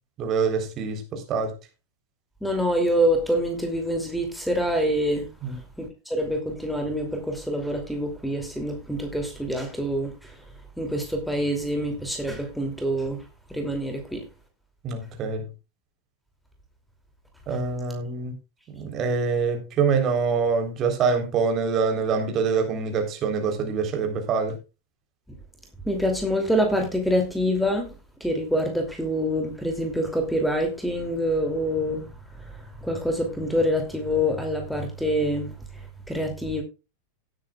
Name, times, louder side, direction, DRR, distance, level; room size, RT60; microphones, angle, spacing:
voice 1, 0.2-1.5 5.4-5.6 14.8-15.5 17.5-18.3 18.7-24.5, right 5 dB, 30° right, 3.7 m, -25 dB
voice 2, 2.4-10.4 10.8-13.2 13.5-14.2 25.8-27.9 28.2-36.6, equal, ahead, 2.7 m, -26 dB
18.0 x 8.9 x 2.4 m
figure-of-eight pair, 90°, 0 cm